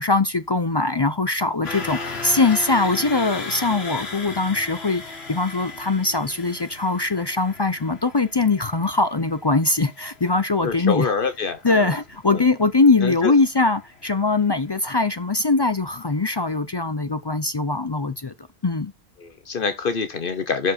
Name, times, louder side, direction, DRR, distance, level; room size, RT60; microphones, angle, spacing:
voice 1, 0.0-11.1 11.6-18.3 18.6-18.9, left 3 dB, 35° left, 0.5 m, -21 dB
sound 1, 1.6-15.7 16.0-16.2 16.6-16.7, left 3 dB, 80° left, 1.9 m, -37 dB
voice 2, 10.6-11.9 12.3-12.4 13.0-13.3 19.2-20.7, left 5 dB, 60° left, 1.0 m, -25 dB
11.5 x 4.8 x 4.2 m
omnidirectional pair, 1.0 m